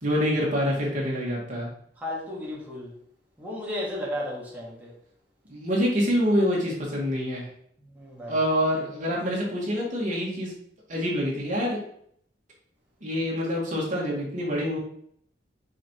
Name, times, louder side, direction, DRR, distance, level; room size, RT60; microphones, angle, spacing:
voice 1, 0.0-1.7 5.5-7.5 8.3-10.5 10.9-11.8 13.0-14.8, equal, 45° right, -3 dB, 2.0 m, -26 dB
voice 2, 2.0-2.9 3.4-4.9 7.9-8.4, left 1 dB, 10° right, -6 dB, 1.9 m, -34 dB
5.2 x 4.9 x 4.6 m, 0.66 s
head